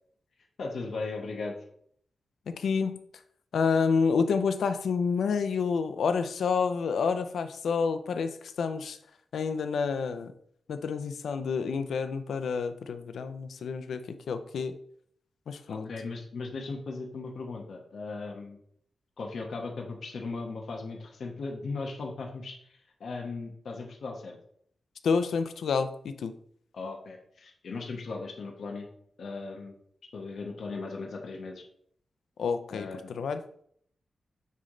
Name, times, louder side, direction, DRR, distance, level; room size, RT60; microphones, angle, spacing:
voice 1, 0.6-1.6 15.7-18.6 19.2-24.4 26.7-28.9 29.2-29.7 30.1-31.6 32.7-33.3, left 3 dB, 65° left, 1 dB, 1.1 m, -37 dB
voice 2, 2.6-3.0 3.5-9.0 9.3-10.3 10.7-14.0 14.3-14.7 15.5-15.9 25.0-26.3 32.4-33.4, left 5 dB, 85° left, 10 dB, 0.5 m, -29 dB
9.2 x 3.2 x 3.8 m, 0.65 s
wide cardioid pair, 175°, 0 cm